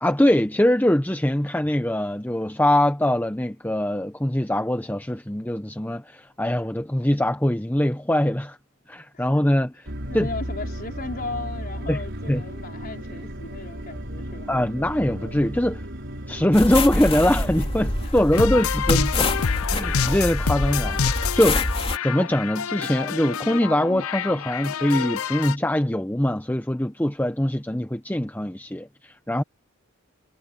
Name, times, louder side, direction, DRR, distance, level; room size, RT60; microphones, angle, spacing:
voice 1, 0.0-8.6 8.9-9.9 10.1-10.3 11.9-12.0 12.3-12.4 14.5-15.8 16.3-19.3 19.6-21.7 22.0-29.4, left 1 dB, 10° left, 0.8 m, -22 dB
sound 1, 9.9-18.1, equal, 55° right, 6.2 m, -34 dB
voice 2, 10.1-14.5 18.0-18.4 24.6-24.9, left 3 dB, 40° left, 4.8 m, -36 dB
sound 2, 16.5-22.0, left 2 dB, 25° left, 3.1 m, -26 dB
sound 3, 18.3-25.6, left 7 dB, 75° left, 0.6 m, -28 dB
head